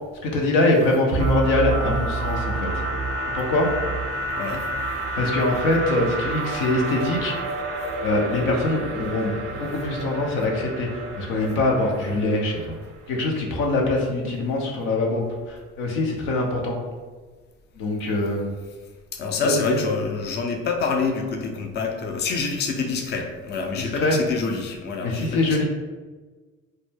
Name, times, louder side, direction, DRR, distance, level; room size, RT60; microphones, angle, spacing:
voice 1, 0.2-2.7 3.3-3.7 5.1-7.4 8.0-12.8 13.1-16.8 17.7-18.5 19.4-19.8 23.8-24.2 25.0-25.6, left 2 dB, 80° left, 0 dB, 0.6 m, -23 dB
sound 1, 1.1-12.9, right 2 dB, 40° right, 0.5 m, -29 dB
voice 2, 19.1-25.6, left 4 dB, 30° left, 2 dB, 0.4 m, -27 dB
2.1 x 2.0 x 3.2 m, 1.4 s
hypercardioid pair, 65°, 36 cm